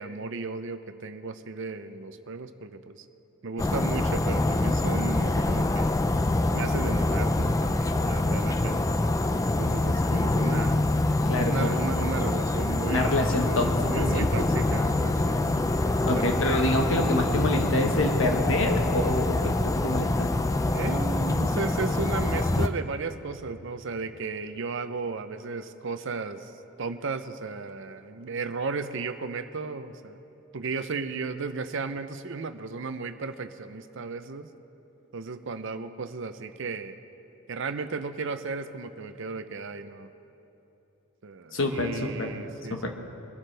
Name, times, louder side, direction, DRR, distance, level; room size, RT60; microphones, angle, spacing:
voice 1, 0.0-3.0 3.4-6.0 6.5-9.0 9.6-10.8 11.4-15.8 16.1-16.5 20.6-26.5 26.8-30.2 30.5-34.5 35.1-37.0 37.5-40.1 41.2-42.9, right 4 dB, 55° right, 10 dB, 0.6 m, -35 dB
sound 1, 3.6-22.7, left 2 dB, 15° left, 0.3 m, -25 dB
voice 2, 11.3-11.8 12.9-13.7 13.9-14.3 16.1-20.3 41.5-42.3 42.7-42.9, left 1 dB, 60° left, 3 dB, 1.3 m, -26 dB
23.0 x 11.5 x 3.4 m, 2.9 s
head